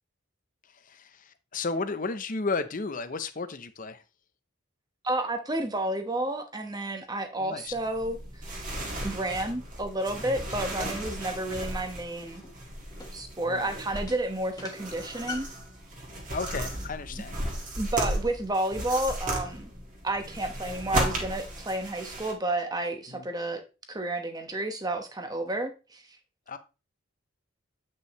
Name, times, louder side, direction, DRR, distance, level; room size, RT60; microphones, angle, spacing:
voice 1, 0.7-4.0 7.4-7.7 10.8-11.1 13.5-13.7 16.3-17.4 23.1-23.3 26.5-26.6, left 4 dB, 40° left, 0.7 m, -34 dB
voice 2, 5.0-8.6 9.0-12.4 13.1-15.5 17.8-19.7 20.0-23.6 23.9-26.0, right 1 dB, 20° right, 1.0 m, -31 dB
sound 1, 7.7-22.3, right 1 dB, 40° right, 2.0 m, -35 dB
sound 2, 11.5-15.7, left 4 dB, 20° left, 1.3 m, -44 dB
8.5 x 5.5 x 3.1 m
head